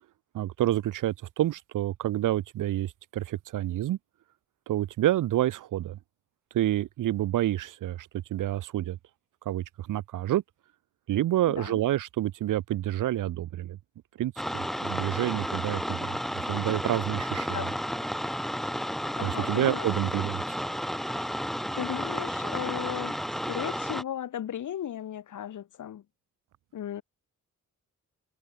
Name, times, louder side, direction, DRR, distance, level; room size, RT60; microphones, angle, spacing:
voice 1, 0.3-4.0 4.7-6.0 6.5-9.0 9.5-10.4 11.1-13.8 14.2-17.7 19.2-20.4, right 13 dB, 85° right, 0.8 m, -28 dB
voice 2, 11.5-11.8 17.5-17.8 19.2-19.9 21.8-26.0 26.7-27.0, left 10 dB, 75° left, 5.1 m, -36 dB
sound 1, 14.4-24.0, equal, ahead, 2.2 m, -32 dB
wide cardioid pair, 170°, 30 cm